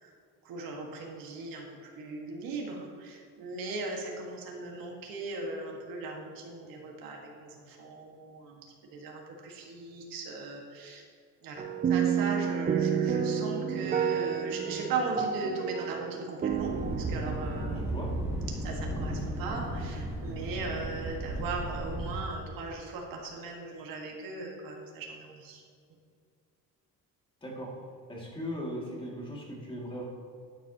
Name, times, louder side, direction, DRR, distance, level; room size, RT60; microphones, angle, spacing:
voice 1, 0.4-8.6 8.9-11.0 11.4-17.8 18.6-25.6, right 3 dB, 75° right, 0 dB, 1.8 m, -38 dB
sound 1, 11.6-17.9, right 8 dB, 25° right, 0.4 m, -30 dB
Thunder, 16.5-22.2, right 1 dB, 5° right, 1.6 m, -35 dB
voice 2, 17.7-18.1 27.4-27.7 28.1-30.0, equal, 15° left, -3 dB, 2.4 m, -38 dB
12.0 x 9.3 x 3.0 m, 2.2 s
cardioid pair, 140°, 35 cm